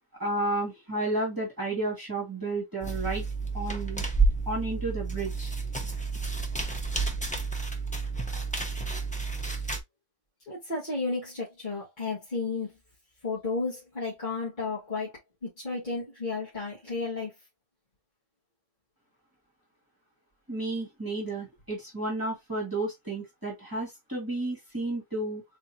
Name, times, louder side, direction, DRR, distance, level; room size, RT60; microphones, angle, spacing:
voice 1, 0.2-3.2 3.5-4.0 4.5-5.5 20.5-25.4, right 2 dB, 15° right, 2.2 m, -32 dB
sound 1, 2.8-9.8, right 3 dB, 5° left, 0.8 m, -30 dB
voice 2, 10.5-12.7 13.2-15.1 15.4-17.3, left 3 dB, 35° left, 2.2 m, -33 dB
4.3 x 3.6 x 2.8 m
omnidirectional pair, 1.4 m